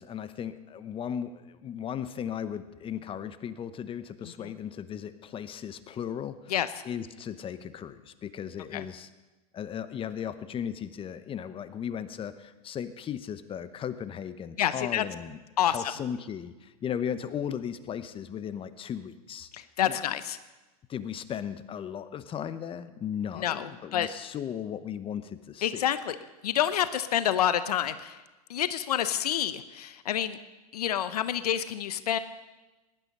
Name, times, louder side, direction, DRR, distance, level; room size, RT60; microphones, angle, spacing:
voice 1, 0.0-6.5 6.8-9.1 9.5-15.4 15.7-19.5 19.9-20.0 20.9-25.9, left 8 dB, 25° left, 13 dB, 1.0 m, -36 dB
voice 2, 14.6-15.0 15.6-15.9 19.5-20.4 23.3-24.1 25.6-26.1 26.4-28.2 28.5-30.4 30.7-32.2, left 10 dB, 85° left, 13 dB, 0.9 m, -28 dB
17.5 x 11.5 x 5.4 m, 1.1 s
hypercardioid pair, 110°, 19 cm